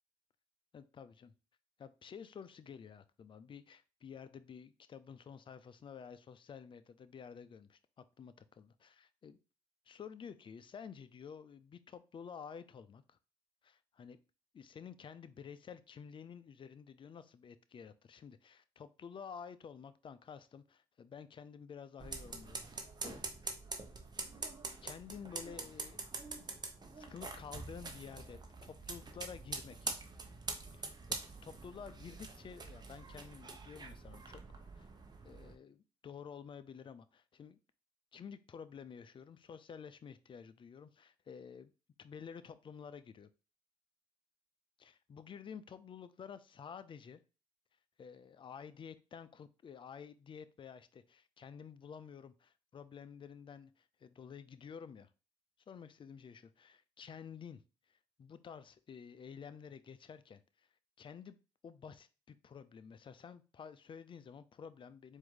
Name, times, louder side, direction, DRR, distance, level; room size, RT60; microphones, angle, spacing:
voice 1, 0.7-1.3 1.8-9.4 9.9-13.2 13.6-14.2 14.5-23.6 24.8-26.0 26.9-28.4 28.7-29.9 30.7-34.4 34.8-34.9 35.2-37.6 38.1-41.7 42.0-43.3 44.8-47.2 48.0-55.1 55.7-57.6 57.9-60.7 61.0-61.4 61.6-65.2, left 7 dB, 40° left, 13 dB, 0.5 m, -51 dB
sound 1, 22.0-35.5, right 3 dB, 35° right, 1.0 m, -45 dB
4.5 x 2.7 x 3.8 m, 0.33 s
supercardioid pair, 55°, 13 cm